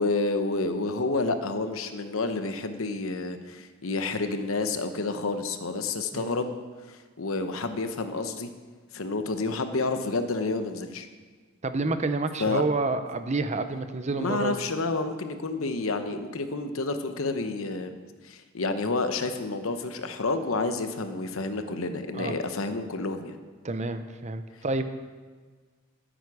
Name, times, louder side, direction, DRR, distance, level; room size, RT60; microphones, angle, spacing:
voice 1, 0.0-6.6 6.9-8.5 8.9-11.1 12.4-12.6 14.2-17.9 18.2-23.4, left 3 dB, 80° left, 8 dB, 0.9 m, -29 dB
voice 2, 11.6-14.6 22.1-22.3 23.6-24.8, right 3 dB, 35° right, 9 dB, 0.6 m, -29 dB
13.0 x 9.0 x 4.9 m, 1.5 s
head